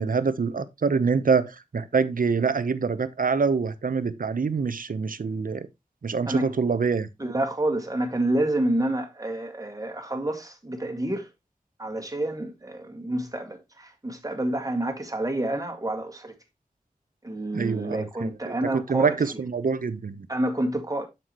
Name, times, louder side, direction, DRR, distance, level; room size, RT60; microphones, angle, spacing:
voice 1, 0.0-5.7 6.0-7.1 17.5-20.3, right 5 dB, 70° right, 0.8 m, -25 dB
voice 2, 7.2-11.3 11.8-16.3 17.2-19.1 20.3-21.1, right 1 dB, 25° right, 2.0 m, -28 dB
7.5 x 7.0 x 2.9 m
wide cardioid pair, 60°, 15 cm